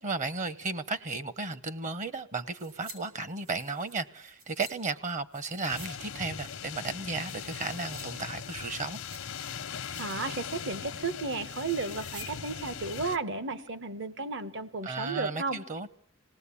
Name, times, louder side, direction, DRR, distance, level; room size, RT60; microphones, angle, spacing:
voice 1, 0.0-9.0 14.8-15.9, right 3 dB, 35° right, 0.9 m, -34 dB
sound 1, 2.5-3.0 3.3-4.7 5.3-5.9 6.2-6.3 6.8-8.0 8.4-9.4 9.8-10.3 10.6-10.9 11.6-12.3 12.6-12.7, right 3 dB, 80° right, 5.4 m, -51 dB
sound 2, 5.7-13.2, left 7 dB, 80° left, 0.9 m, -40 dB
voice 2, 10.0-15.6, right 3 dB, 60° right, 1.3 m, -34 dB
27.0 x 18.5 x 8.5 m
head